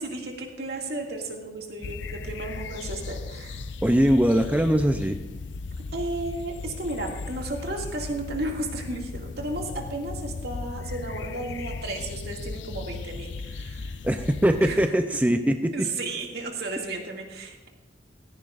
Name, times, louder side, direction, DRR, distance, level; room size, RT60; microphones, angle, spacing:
voice 1, 0.0-3.7 5.9-14.0 14.6-14.8 15.7-17.7, right 2 dB, 60° right, 0 dB, 2.2 m, -34 dB
sound 1, 1.8-14.9, left 3 dB, 85° left, 0.5 m, -37 dB
voice 2, 3.8-5.2 14.0-15.7, equal, 10° right, 6 dB, 0.5 m, -21 dB
16.5 x 14.5 x 2.5 m, 1.2 s
head